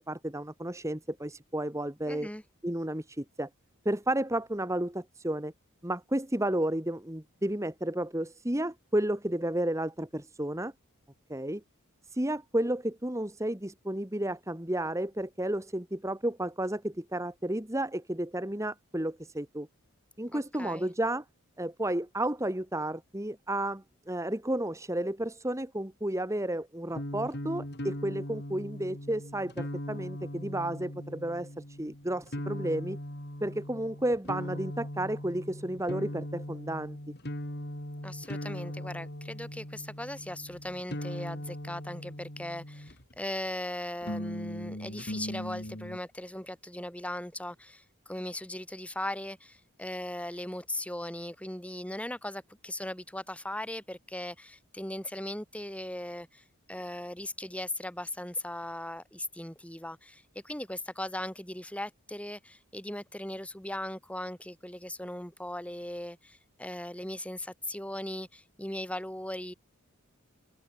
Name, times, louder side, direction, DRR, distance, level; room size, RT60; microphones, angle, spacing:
voice 1, 0.1-2.3 2.6-3.5 3.8-5.5 5.8-10.7 11.3-11.6 12.1-19.7 20.2-21.2 21.6-33.0 33.4-37.0, right 1 dB, 15° right, 1.4 m, -32 dB
voice 2, 2.1-2.4 20.3-20.9 38.0-69.5, left 1 dB, 5° left, 3.9 m, -38 dB
sound 1, 26.9-43.2 44.0-46.0, equal, 50° left, 5.0 m, -39 dB
head